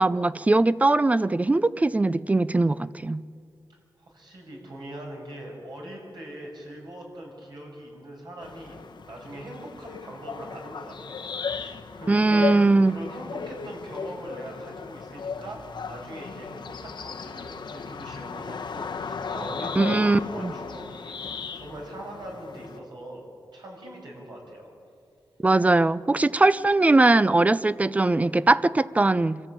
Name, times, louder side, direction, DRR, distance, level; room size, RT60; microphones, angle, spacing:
voice 1, 0.0-3.2 12.1-12.9 19.8-20.5 25.4-29.4, right 2 dB, 20° right, 17 dB, 0.5 m, -20 dB
voice 2, 4.0-12.5 12.8-23.2 23.5-24.7, right 1 dB, 65° right, -1 dB, 6.9 m, -41 dB
sound 1, 8.4-22.8, left 5 dB, 75° left, 1.1 m, -36 dB
25.0 x 13.5 x 8.9 m, 2.2 s
wide cardioid pair, 100°, 8 cm